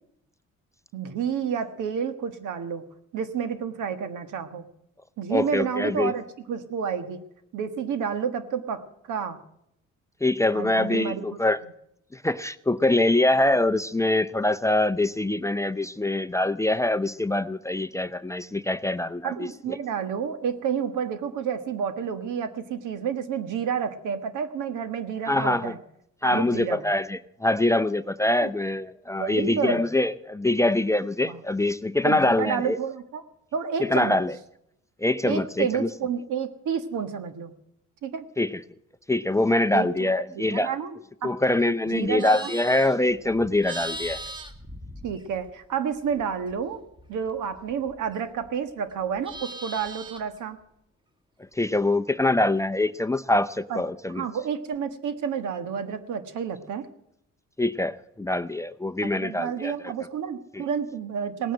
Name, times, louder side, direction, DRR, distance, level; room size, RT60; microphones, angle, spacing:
voice 1, 0.9-2.9 3.1-4.7 5.2-7.2 7.5-8.8 9.1-9.4 10.5-11.4 19.2-25.8 26.2-26.8 28.4-28.5 29.1-29.9 31.2-31.4 32.0-33.2 33.5-34.2 35.2-37.5 38.0-38.2 39.7-41.3 41.9-42.5 45.0-46.8 47.1-50.6 53.7-53.8 54.1-56.8 59.0-61.5, right 7 dB, 80° right, 10 dB, 1.6 m, -30 dB
voice 2, 5.3-6.1 10.2-11.6 12.1-19.8 25.3-25.8 26.2-32.8 33.8-34.4 35.0-35.9 38.4-38.6 39.1-40.7 41.2-44.2 51.6-54.2 57.6-59.9 60.5-60.6, left 2 dB, 10° left, 10 dB, 0.5 m, -24 dB
Livestock farm animals working animals, 41.9-45.6 46.0-48.5 48.8-50.4, right 1 dB, 15° right, 1.9 m, -40 dB
18.5 x 9.3 x 7.7 m, 0.77 s
cardioid pair, 90°, 30 cm